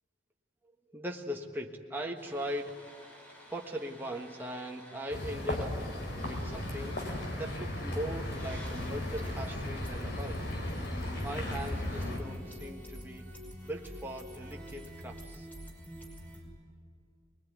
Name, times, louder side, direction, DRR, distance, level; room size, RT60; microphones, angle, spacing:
voice 1, 0.9-2.9 3.5-5.9 6.1-10.4 11.2-13.3 13.6-15.5, equal, 10° right, 0 dB, 1.4 m, -40 dB
sound 1, 2.2-16.4, equal, 10° left, 5.5 m, -49 dB
sound 2, 5.1-12.2, left 1 dB, 60° left, 4.6 m, -36 dB
24.5 x 21.5 x 9.5 m, 2.3 s
head